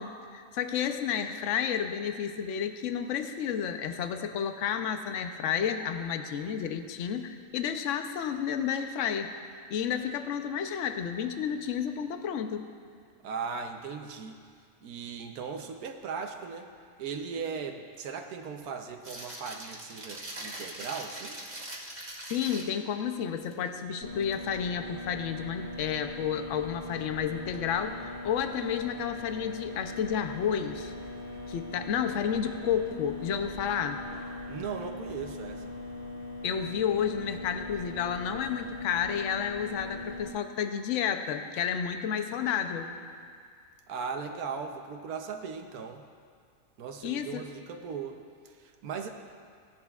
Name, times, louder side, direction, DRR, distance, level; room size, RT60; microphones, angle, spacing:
voice 1, 0.0-9.3 9.7-12.7 22.3-30.9 31.5-34.0 36.4-42.9 47.0-47.4, left 8 dB, 65° left, 7 dB, 0.9 m, -31 dB
voice 2, 13.2-14.4 14.8-16.7 17.0-21.4 34.5-35.7 43.9-46.0 46.8-48.2 48.4-49.1, right 5 dB, 80° right, 5 dB, 1.2 m, -38 dB
sound 1, 19.0-22.9 23.4-23.7 24.1-24.6 27.5-27.6 30.6-30.9, right 1 dB, 30° right, 1.3 m, -42 dB
sound 2, 24.0-40.3, left 2 dB, 10° left, 1.1 m, -41 dB
17.5 x 11.0 x 2.4 m, 2.1 s
omnidirectional pair, 1.6 m